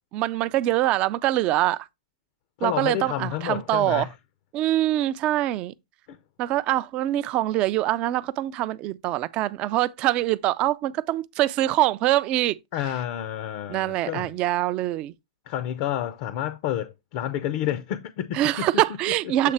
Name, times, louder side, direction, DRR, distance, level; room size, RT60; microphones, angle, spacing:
voice 1, 0.1-1.9 2.6-4.1 4.5-5.7 6.4-12.6 13.7-15.1 18.3-19.5, right 14 dB, 30° right, 0.3 m, -24 dB
voice 2, 2.6-4.1 6.1-6.2 12.7-14.3 15.5-18.7, left 11 dB, 45° left, 0.5 m, -29 dB
7.5 x 3.2 x 4.3 m
hypercardioid pair, 140°, 3 cm